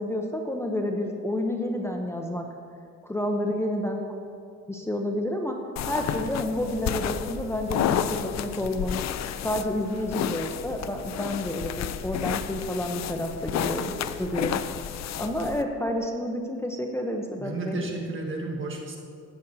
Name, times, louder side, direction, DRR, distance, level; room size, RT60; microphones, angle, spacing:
voice 1, 0.0-2.4 3.0-4.4 4.7-5.6 5.9-9.0 9.4-14.6 15.2-17.8, left 1 dB, 10° left, 2 dB, 0.7 m, -30 dB
sound 1, 5.8-15.6, left 9 dB, 60° left, 0.5 m, -31 dB
voice 2, 17.4-19.0, right 2 dB, 40° right, 1 dB, 1.4 m, -32 dB
14.0 x 8.2 x 2.7 m, 2.3 s
cardioid pair, 90°, 30 cm